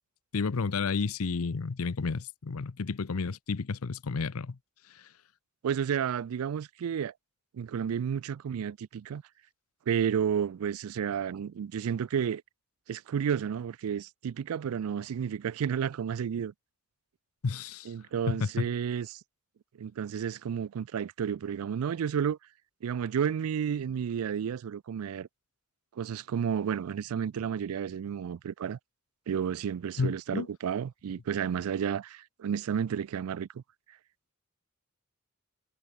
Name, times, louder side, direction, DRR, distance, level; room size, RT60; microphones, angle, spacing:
voice 1, 0.3-4.6 17.4-17.9 18.3-18.7 30.0-30.5, left 4 dB, 85° left, 0.7 m, -31 dB
voice 2, 5.6-7.1 7.5-9.2 9.9-12.4 12.9-16.5 17.9-19.2 19.8-22.4 22.8-25.3 26.0-28.8 29.3-33.6, right 8 dB, 85° right, 0.4 m, -31 dB
head